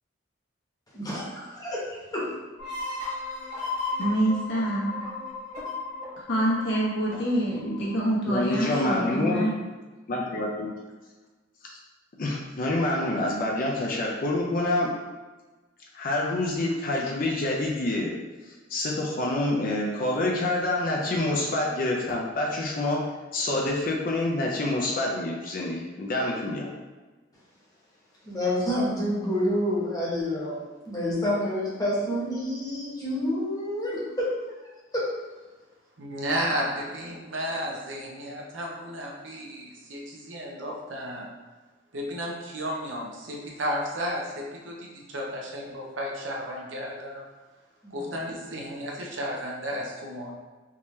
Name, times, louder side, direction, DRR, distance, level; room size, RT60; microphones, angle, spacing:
voice 1, 0.9-1.8 2.1-2.2 28.3-30.6 30.8-34.4 34.9-35.1 47.8-48.5, left 1 dB, 20° left, -7 dB, 1.0 m, -28 dB
sound 1, 2.6-8.0, left 3 dB, 40° right, 1.4 m, -35 dB
voice 2, 4.0-4.9 6.2-9.5, right 1 dB, 80° left, -5 dB, 1.1 m, -26 dB
voice 3, 7.5-8.0 8.3-9.5 10.1-10.7 11.6-11.8 12.2-14.9 15.9-18.1 18.7-26.7, left 2 dB, 50° left, -1 dB, 0.5 m, -27 dB
voice 4, 36.0-41.3 41.9-47.2 47.9-50.3, equal, 75° right, -1 dB, 0.7 m, -33 dB
3.6 x 2.8 x 3.1 m, 1.2 s
head